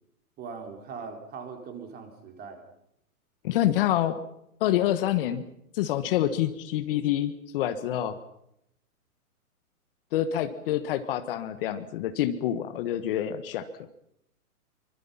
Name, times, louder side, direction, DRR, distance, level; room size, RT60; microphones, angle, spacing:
voice 1, 0.4-2.6, right 5 dB, 20° right, 4 dB, 4.3 m, -40 dB
voice 2, 3.4-4.2 4.6-5.4 5.7-8.2 10.1-13.7, left 12 dB, 40° left, 9 dB, 1.5 m, -27 dB
25.5 x 25.0 x 5.8 m, 0.78 s
hypercardioid pair, 140°, 45 cm